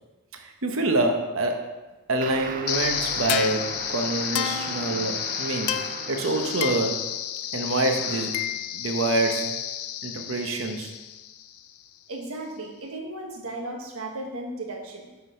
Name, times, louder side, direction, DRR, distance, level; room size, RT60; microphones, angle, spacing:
voice 1, 0.4-1.7 2.1-5.8 6.1-7.0 7.5-8.4 8.7-9.6 10.0-10.9, right 2 dB, 65° right, 4 dB, 0.9 m, -26 dB
sound 1, 2.2-7.3 8.0-8.5, right 6 dB, 40° right, 0.3 m, -38 dB
sound 2, 2.7-11.7, left 11 dB, 85° left, 0.4 m, -30 dB
voice 2, 12.1-15.1, right 2 dB, 85° right, 1 dB, 1.3 m, -35 dB
7.8 x 3.9 x 5.6 m, 1.1 s
head